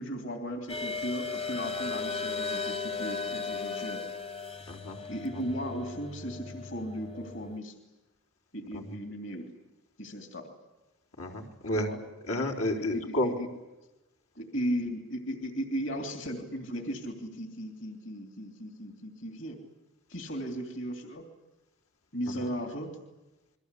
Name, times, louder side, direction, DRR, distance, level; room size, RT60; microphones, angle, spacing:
voice 1, 0.0-4.0 5.1-7.7 8.5-9.5 10.0-10.5 11.7-12.0 12.9-13.5 14.3-19.6 20.1-21.2 22.1-22.9, equal, 60° left, 5 dB, 3.1 m, -36 dB
sound 1, 0.7-7.6, left 4 dB, 25° left, 0.8 m, -36 dB
voice 2, 4.7-5.0 5.3-5.4 8.7-8.8 11.2-11.9 12.3-13.3, left 1 dB, 90° left, 1 dB, 4.3 m, -31 dB
28.5 x 23.0 x 8.4 m, 1.0 s
head